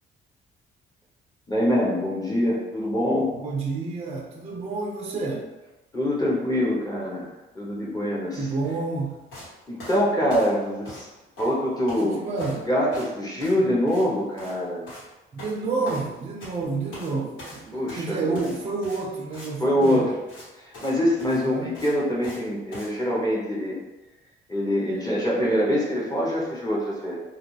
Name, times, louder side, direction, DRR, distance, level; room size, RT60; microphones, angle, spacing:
voice 1, 1.5-3.3 5.9-7.3 7.6-8.5 9.7-11.1 11.4-12.2 12.7-14.8 17.7-18.5 19.6-20.1 20.6-23.8 24.5-27.2, equal, 20° left, -4 dB, 0.7 m, -24 dB
voice 2, 3.4-5.5 8.4-9.2 12.0-12.7 15.3-20.1 21.3-21.8, right 3 dB, 30° right, 0 dB, 0.4 m, -29 dB
sound 1, 9.3-9.5 9.8-11.1 11.4-12.1 12.3-12.6 12.9-13.1 13.4-13.6 13.9-14.1 14.3-14.6 14.9-15.1 15.4-16.6 16.9-17.1 17.4-19.5 19.8-20.0 20.3-20.5 20.7-20.9 21.2-22.4 22.7-22.9, left 1 dB, 80° left, 1.4 m, -42 dB
2.3 x 2.3 x 3.0 m, 1.1 s
cardioid pair, 90°, 20 cm